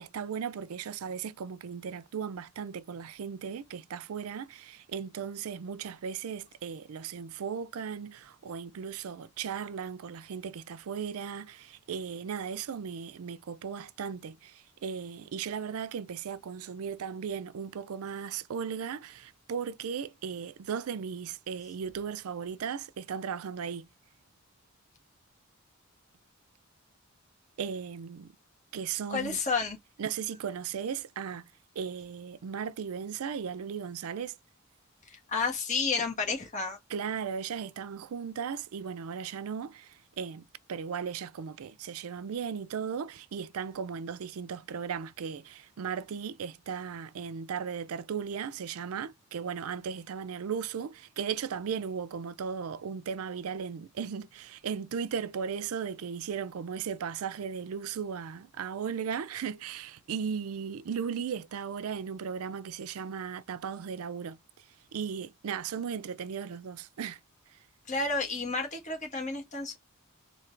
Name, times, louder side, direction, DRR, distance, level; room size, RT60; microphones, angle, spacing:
voice 1, 0.0-23.9 27.6-28.3 28.7-29.4 30.0-31.5 31.8-34.4 36.9-64.4 64.9-67.2, right 7 dB, 90° right, 0.4 m, -36 dB
voice 2, 29.1-29.8 35.0-36.8 67.9-69.8, left 4 dB, 35° left, 1.5 m, -31 dB
4.4 x 2.8 x 2.4 m
head